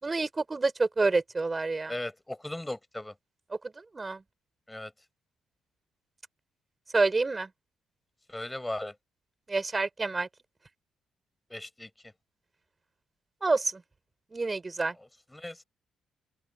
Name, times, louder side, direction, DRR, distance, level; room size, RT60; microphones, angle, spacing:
voice 1, 0.0-1.9 3.9-4.2 6.9-7.5 9.5-10.3 13.4-13.8 14.3-15.0, right 3 dB, 25° right, 5.5 m, -28 dB
voice 2, 1.9-3.1 4.7-4.9 8.3-8.9 11.5-11.9 15.3-15.6, left 1 dB, 10° left, 5.8 m, -37 dB
open air
cardioid pair, 90°, 0 cm